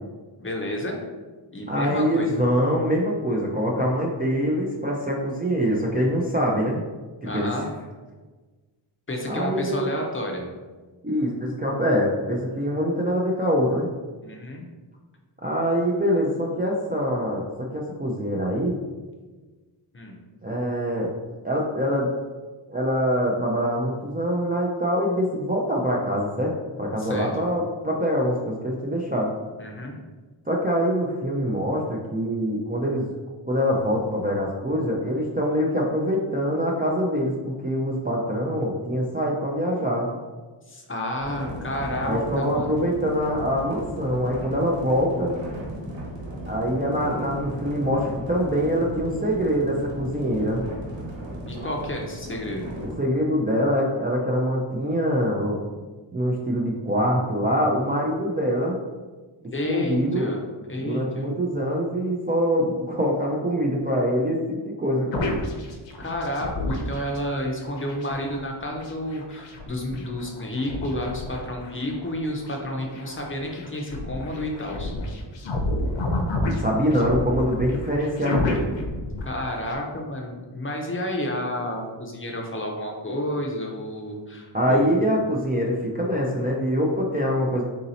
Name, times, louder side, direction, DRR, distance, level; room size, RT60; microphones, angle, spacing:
voice 1, 0.4-1.0 1.5-2.4 7.2-7.7 9.1-10.5 14.2-14.6 19.9-20.2 27.0-27.3 29.6-30.0 40.7-42.7 51.5-52.7 59.5-60.4 60.7-61.2 66.0-74.9 79.2-84.9, left 1 dB, 25° left, 0 dB, 0.6 m, -30 dB
voice 2, 1.7-6.8 7.3-7.5 9.3-9.9 11.0-13.9 15.4-18.8 20.4-21.1 21.4-22.1 22.7-29.3 30.5-33.1 33.5-40.1 42.0-45.3 46.5-50.6 53.0-55.6 56.1-58.8 59.6-60.3 60.8-65.3 76.6-78.7 84.5-87.6, equal, 20° right, -3 dB, 0.4 m, -24 dB
sound 1, 41.2-53.0, right 1 dB, 65° right, 1.2 m, -36 dB
sound 2, 65.1-67.2 67.6-72.5 73.0-79.7, left 1 dB, 65° left, 0.7 m, -30 dB
3.9 x 2.7 x 4.0 m, 1.3 s
wide cardioid pair, 145°, 48 cm